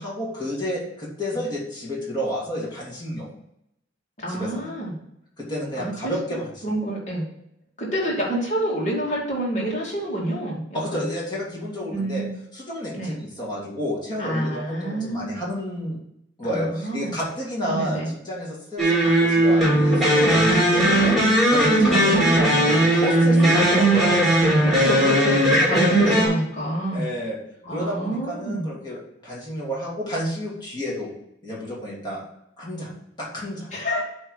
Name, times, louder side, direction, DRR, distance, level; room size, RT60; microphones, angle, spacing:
voice 1, 0.0-3.3 4.3-4.7 5.4-6.7 10.7-12.2 12.5-16.0 16.4-21.2 21.4-24.2 25.0-25.2 25.9-26.1 26.9-27.4 27.7-31.1 31.4-32.2 32.6-32.9 33.2-33.7, equal, 25° left, -5 dB, 2.8 m, -30 dB
voice 2, 4.2-5.0 5.8-6.1 6.6-7.2 7.8-11.0 11.9-12.3 12.9-13.2 14.2-15.3 16.5-17.1 17.6-18.1 21.8-22.6 23.3-23.5 24.6-27.1 27.6-28.7 33.7-34.0, right 1 dB, 40° left, -4 dB, 2.8 m, -28 dB
sound 1, 18.8-26.3, right 1 dB, ahead, 2.6 m, -18 dB
8.6 x 3.6 x 6.5 m, 0.77 s
head